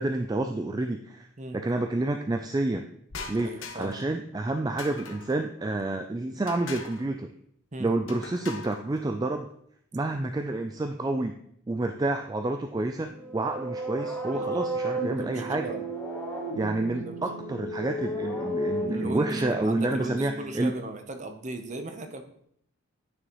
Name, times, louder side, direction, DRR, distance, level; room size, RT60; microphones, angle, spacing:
voice 1, 0.0-1.3 1.5-2.9 3.3-7.3 7.8-9.5 9.9-11.4 11.7-15.6 16.5-20.7, right 2 dB, 20° right, 6 dB, 0.3 m, -29 dB
sound 1, 3.1-4.1 4.8-5.4 6.5-7.1 8.1-8.8, left 4 dB, 70° left, 1.1 m, -41 dB
voice 2, 3.4-4.1 7.7-7.9 14.3-14.7 15.0-15.9 16.9-17.1 18.8-22.2, right 2 dB, 35° right, 7 dB, 0.8 m, -38 dB
sound 2, 13.0-20.8, right 1 dB, 10° left, 2.3 m, -33 dB
9.6 x 6.2 x 3.0 m, 0.69 s
head